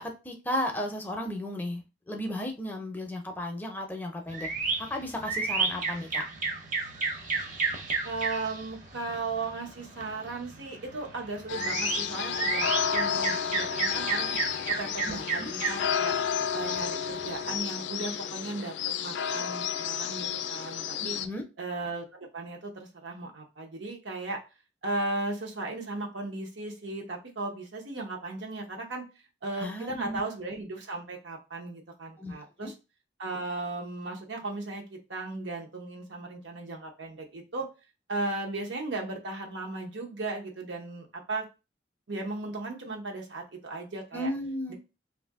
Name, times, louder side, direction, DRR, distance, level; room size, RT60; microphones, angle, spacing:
voice 1, 0.0-4.5 4.9-6.2 15.1-15.5 21.0-21.4 29.6-30.2 32.2-32.7 44.1-44.7, left 1 dB, 10° left, 2 dB, 0.5 m, -34 dB
sound 1, 4.3-17.6, right 4 dB, 45° right, 0.6 m, -33 dB
voice 2, 8.0-14.4 14.7-16.1 16.5-18.7 19.0-21.2 21.6-24.4 24.8-29.0 29.4-32.7 33.2-37.7 38.1-41.5 42.1-44.3 44.7-44.8, right 2 dB, 85° right, 1 dB, 0.8 m, -36 dB
sound 2, 11.5-21.3, left 8 dB, 75° left, 0.3 m, -31 dB
2.6 x 2.6 x 3.5 m, 0.29 s
head